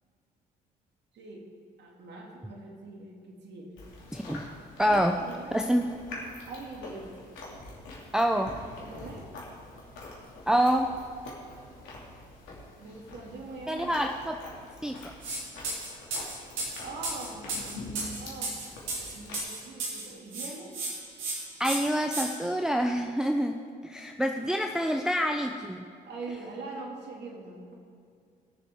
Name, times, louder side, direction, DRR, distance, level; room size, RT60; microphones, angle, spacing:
voice 1, 1.8-3.7 4.9-5.8 6.5-7.1 8.8-9.3 12.8-13.9 16.8-17.5 18.2-18.6 19.1-20.7 24.3-24.7 26.0-27.7, right 3 dB, 55° right, 0 dB, 2.4 m, -43 dB
Chewing mastication, 3.8-19.4, left 2 dB, 70° left, 2.6 m, -45 dB
voice 2, 4.1-4.4 4.8-5.2 5.5-5.9 8.1-8.5 10.5-10.9 13.7-14.4 14.8-15.1 21.6-23.5 23.8-25.8, equal, 5° right, 4 dB, 0.6 m, -26 dB
sound 1, 15.2-15.4 15.6-20.1 20.3-20.9 21.2-21.3 21.6-22.2, right 3 dB, 70° right, 2.7 m, -33 dB
18.5 x 6.9 x 3.7 m, 2.3 s
hypercardioid pair, 55°, 21 cm